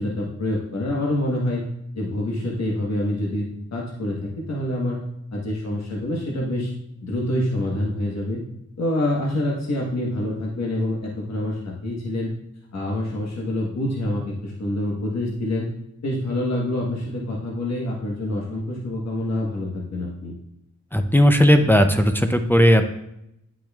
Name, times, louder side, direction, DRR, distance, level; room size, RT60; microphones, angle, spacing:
voice 1, 0.0-1.6 2.0-5.0 5.3-6.7 7.0-8.4 8.8-12.3 12.7-15.7 16.0-20.3, left 1 dB, 60° left, -3 dB, 1.2 m, -26 dB
voice 2, 20.9-22.9, equal, 5° left, 6 dB, 0.4 m, -16 dB
10.0 x 6.1 x 2.3 m, 0.80 s
wide cardioid pair, 140°, 30 cm